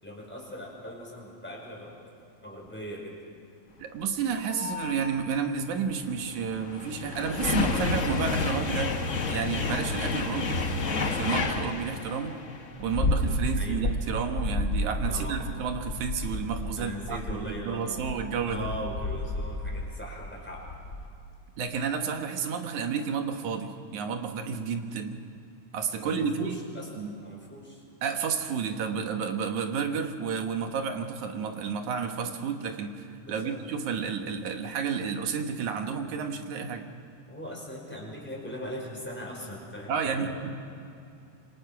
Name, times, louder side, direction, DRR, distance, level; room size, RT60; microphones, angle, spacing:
voice 1, 0.0-2.0 2.4-3.2 13.0-13.8 15.1-15.4 16.8-18.1 18.5-20.7 26.0-26.9 27.2-27.8 33.3-33.6 37.3-40.5, equal, 5° left, -2 dB, 5.1 m, -40 dB
voice 2, 3.8-9.0 9.3-12.4 12.8-18.7 21.6-25.2 25.7-26.6 27.0-27.2 28.0-36.9 39.9-40.7, right 6 dB, 75° right, 5 dB, 2.8 m, -31 dB
sound 1, 4.3-5.1 6.0-21.1, left 3 dB, 70° left, 0.7 m, -31 dB
27.0 x 24.5 x 6.0 m, 2.6 s
omnidirectional pair, 3.5 m